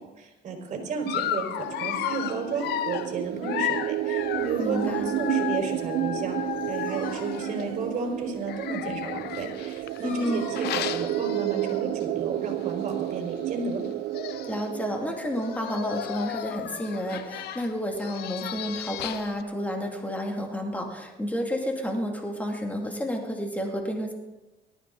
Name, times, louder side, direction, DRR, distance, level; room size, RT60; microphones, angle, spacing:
voice 1, 0.2-1.4 1.8-6.4 6.7-13.8, right 4 dB, 50° right, 1 dB, 4.8 m, -33 dB
Dog, 1.1-7.6 8.4-12.0 12.4-12.6 12.9-13.0 13.8-13.9 14.1-14.7 15.3-19.4, left 12 dB, 75° left, 0.8 m, -34 dB
sound 1, 1.6-17.2, right 16 dB, 70° right, 0.5 m, -32 dB
Dog 2, 4.2-12.0, left 2 dB, 60° left, 4.5 m, -48 dB
voice 2, 4.6-5.2 10.0-10.5 14.5-24.1, equal, 10° left, 1 dB, 2.5 m, -30 dB
18.5 x 13.5 x 4.0 m, 1.1 s
cardioid pair, 110°, 17 cm